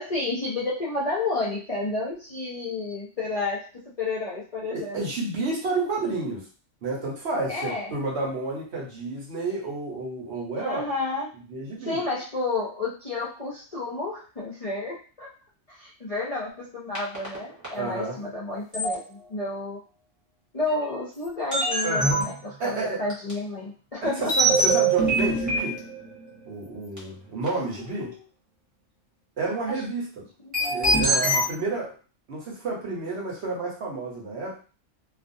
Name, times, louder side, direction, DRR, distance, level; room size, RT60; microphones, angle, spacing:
voice 1, 0.0-3.7 4.0-5.0 7.5-7.9 10.6-11.3 11.8-15.3 15.8-19.8 20.5-24.3 27.9-28.1 29.4-29.8 30.6-30.9, left 3 dB, 40° left, -6 dB, 0.5 m, -31 dB
voice 2, 4.7-6.5 6.8-10.8 11.5-12.0 17.8-18.2 21.8-22.2 22.6-23.0 24.0-25.8 26.5-28.1 29.4-30.3 30.7-31.9 32.3-34.6, right 3 dB, 65° right, -2 dB, 1.1 m, -30 dB
sound 1, 16.9-17.4 17.6-17.7 18.7-18.9 20.7-20.8 21.5-22.3 23.1-23.3 24.3-26.2 27.0-27.1 27.5-27.6 30.5-31.4, right 2 dB, 15° right, 1.0 m, -23 dB
2.4 x 2.3 x 2.6 m, 0.37 s
omnidirectional pair, 1.3 m